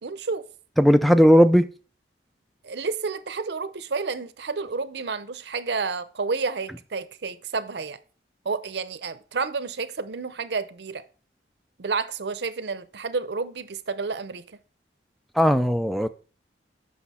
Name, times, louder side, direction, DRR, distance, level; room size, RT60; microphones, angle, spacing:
voice 1, 0.0-0.5 2.6-8.0 8.4-11.0 11.8-14.6, right 4 dB, 70° right, 0.6 m, -30 dB
voice 2, 0.8-1.7 15.4-16.1, equal, ahead, 0.3 m, -17 dB
8.1 x 6.1 x 4.2 m
head